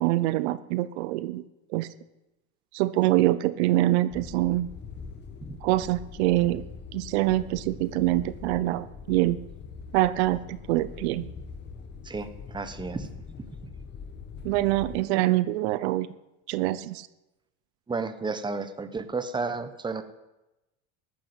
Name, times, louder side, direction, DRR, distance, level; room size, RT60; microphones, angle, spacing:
voice 1, 0.0-1.4 1.7-1.9 2.7-4.7 5.6-6.6 6.9-9.4 9.9-11.3 14.4-16.1 16.5-17.1, right 16 dB, 85° right, 15 dB, 0.8 m, -25 dB
sound 1, 4.1-15.0, left 6 dB, 35° left, 1.4 m, -43 dB
voice 2, 12.0-13.1 13.4-13.7 17.9-20.0, right 4 dB, 15° right, 10 dB, 1.3 m, -32 dB
14.5 x 11.5 x 8.2 m, 0.98 s
supercardioid pair, 120°, 32 cm